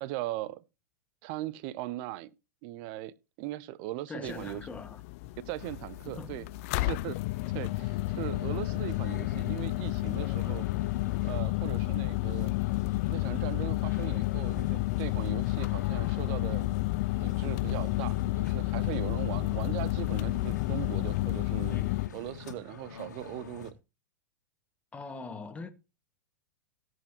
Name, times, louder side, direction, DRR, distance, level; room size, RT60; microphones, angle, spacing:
voice 1, 0.0-0.6 1.2-2.3 2.6-4.6 5.5-6.5 6.7-7.1 7.5-10.7 11.2-12.5 13.1-16.7 17.2-23.7, right 15 dB, 45° right, 0.8 m, -39 dB
voice 2, 4.1-5.0 6.0-6.5 6.8-6.9 24.9-25.7, left 4 dB, 15° left, 1.7 m, -42 dB
sound 1, 4.3-22.1, left 21 dB, 50° left, 0.5 m, -31 dB
sound 2, 5.6-23.7, left 4 dB, 75° left, 1.9 m, -46 dB
17.5 x 7.8 x 3.0 m
figure-of-eight pair, 100°, 10 cm